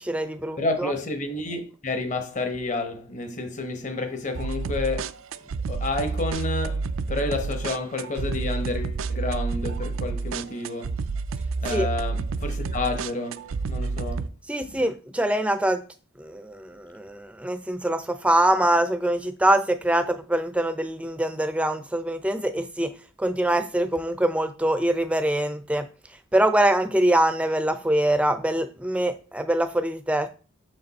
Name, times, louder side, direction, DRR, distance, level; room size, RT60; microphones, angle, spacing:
voice 1, 0.0-0.9 11.7-11.9 14.5-15.8 16.2-22.9 23.2-25.9 26.3-30.3, right 1 dB, 5° right, 0.5 m, -24 dB
voice 2, 0.6-5.1 5.7-10.9 11.6-14.3 14.6-14.8, left 2 dB, 35° left, 1.0 m, -30 dB
sound 1, 4.3-14.3, right 4 dB, 75° right, 0.4 m, -29 dB
6.6 x 5.2 x 4.0 m
head